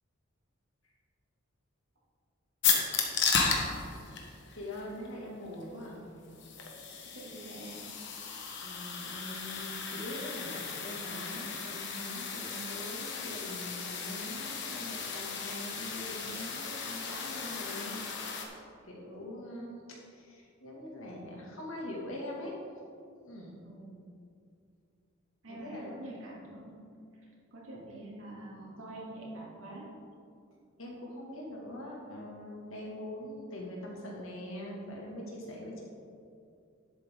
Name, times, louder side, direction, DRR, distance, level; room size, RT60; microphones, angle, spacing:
sound 1, 2.6-18.4, left 5 dB, 60° left, 1.3 m, -35 dB
voice 1, 4.5-6.0 8.6-18.0 18.3-18.5 18.8-22.5 23.2-23.6 25.5-25.9 27.7-28.2 30.8-35.8, left 1 dB, 80° left, -2 dB, 2.2 m, -43 dB
voice 2, 7.1-7.8 11.6-11.7 12.5-12.6 23.6-24.0 25.4-26.8 27.5-29.9 35.4-35.6, right 2 dB, 75° right, -4 dB, 2.6 m, -46 dB
11.0 x 8.1 x 3.8 m, 2.4 s
head